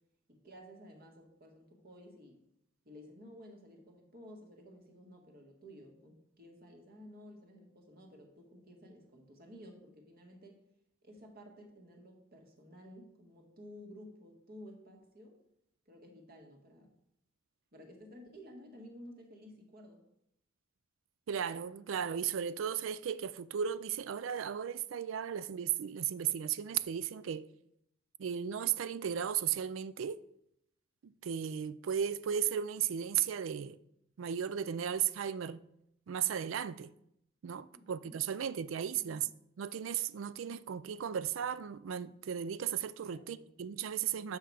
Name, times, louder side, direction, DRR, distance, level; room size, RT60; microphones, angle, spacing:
voice 1, 0.3-2.4 2.8-10.6 11.0-15.4 15.8-16.9 17.7-20.0 37.6-38.6 38.9-39.3 43.0-43.5 43.8-44.4, equal, 50° right, 1.6 m, -54 dB
voice 2, 21.3-27.5 28.2-30.2 31.0-33.8 34.2-35.6 36.1-36.9 37.4-39.3 39.6-44.4, right 8 dB, 85° right, 0.4 m, -35 dB
7.9 x 5.7 x 4.8 m
head